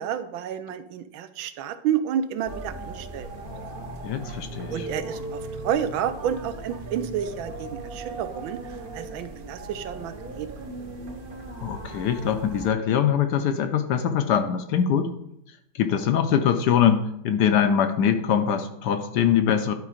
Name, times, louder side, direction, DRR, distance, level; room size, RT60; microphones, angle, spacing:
voice 1, 0.0-3.4 4.7-8.6 8.9-10.5, right 9 dB, 90° right, 11 dB, 1.5 m, -30 dB
sound 1, 2.4-12.7, right 2 dB, 45° right, 0.7 m, -38 dB
voice 2, 4.0-4.9 11.6-15.1 15.7-19.7, left 8 dB, 70° left, 8 dB, 1.1 m, -23 dB
11.5 x 3.9 x 4.9 m, 0.79 s
omnidirectional pair, 2.1 m